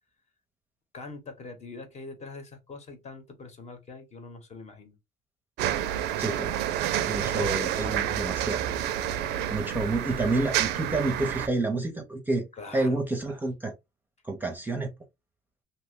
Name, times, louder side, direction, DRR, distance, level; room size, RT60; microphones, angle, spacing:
voice 1, 0.9-4.9 6.9-8.2 12.6-13.0, left 3 dB, 40° left, 1.0 m, -44 dB
sound 1, 5.6-11.5, right 11 dB, 85° right, 0.4 m, -29 dB
voice 2, 6.2-6.5 6.9-8.6 9.5-12.5 12.7-13.7 14.2-14.9, right 2 dB, 10° right, 0.6 m, -29 dB
2.8 x 2.1 x 3.5 m
cardioid pair, 110°, 17 cm